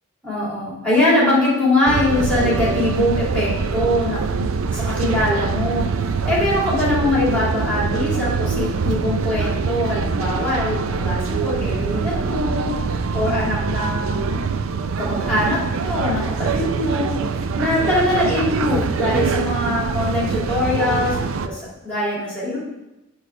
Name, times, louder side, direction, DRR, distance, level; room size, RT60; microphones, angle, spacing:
voice 1, 0.2-12.7 13.1-14.4 15.0-17.1 17.6-21.2 21.4-22.6, left 1 dB, 5° left, -7 dB, 2.7 m, -22 dB
sound 1, 1.9-21.5, right 5 dB, 70° right, 0.4 m, -24 dB
8.1 x 3.3 x 6.2 m, 0.94 s
head